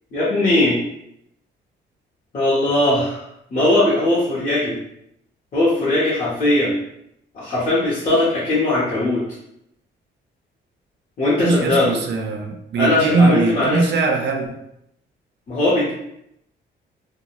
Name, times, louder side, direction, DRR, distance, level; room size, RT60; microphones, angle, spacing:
voice 1, 0.1-0.8 2.3-3.2 3.5-4.7 5.5-6.7 7.3-9.2 11.2-11.9 12.8-13.8 15.5-15.9, left 1 dB, 40° left, -9 dB, 0.9 m, -19 dB
voice 2, 11.4-14.6, right 3 dB, 60° right, 3 dB, 0.5 m, -20 dB
2.2 x 2.2 x 2.9 m, 0.78 s
cardioid pair, 90°, 20 cm